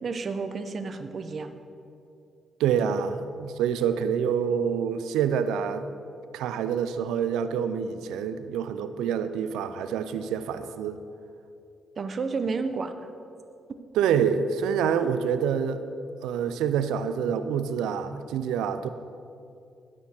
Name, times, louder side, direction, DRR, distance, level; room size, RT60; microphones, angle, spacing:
voice 1, 0.0-1.6 12.0-13.1, right 4 dB, 50° right, 8 dB, 0.8 m, -31 dB
voice 2, 2.6-5.9 6.3-11.0 14.0-15.8 16.2-18.9, right 7 dB, 85° right, 11 dB, 0.5 m, -27 dB
12.0 x 4.5 x 7.1 m, 2.6 s
supercardioid pair, 65°, 0 cm